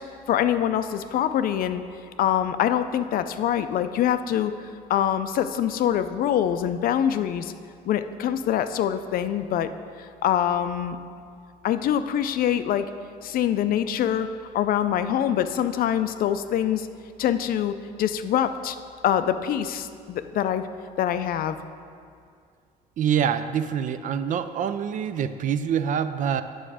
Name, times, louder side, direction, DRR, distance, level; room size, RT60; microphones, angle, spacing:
voice 1, 0.3-1.8 2.2-4.5 4.9-7.5 7.9-9.7 10.0-11.0 11.6-12.9 13.2-14.3 14.5-16.9 17.2-18.8 19.0-20.6 21.0-21.6, left 10 dB, 60° left, 10 dB, 0.4 m, -24 dB
voice 2, 23.0-26.4, right 8 dB, 50° right, 11 dB, 0.4 m, -25 dB
7.9 x 6.2 x 4.8 m, 2.3 s
cardioid pair, 110°, 17 cm